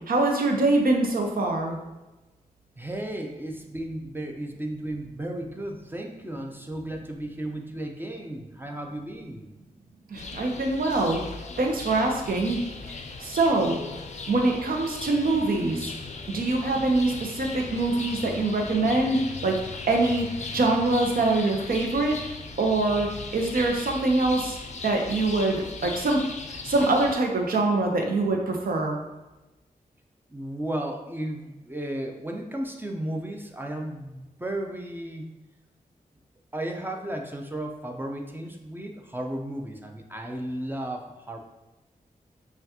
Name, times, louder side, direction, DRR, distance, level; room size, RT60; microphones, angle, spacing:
voice 1, 0.1-1.8 10.1-11.2 11.6-12.6 12.9-13.8 14.3-15.9 16.3-19.6 19.9-22.2 22.6-24.6 24.8-26.2 26.6-29.0, right 2 dB, 75° right, 2 dB, 0.7 m, -24 dB
voice 2, 2.8-9.5 30.3-35.3 36.5-41.4, right 1 dB, 15° right, 2 dB, 0.5 m, -34 dB
sound 1, 10.2-27.2, left 4 dB, 50° left, 0.4 m, -38 dB
5.5 x 2.4 x 2.8 m, 1.0 s
cardioid pair, 70°, 15 cm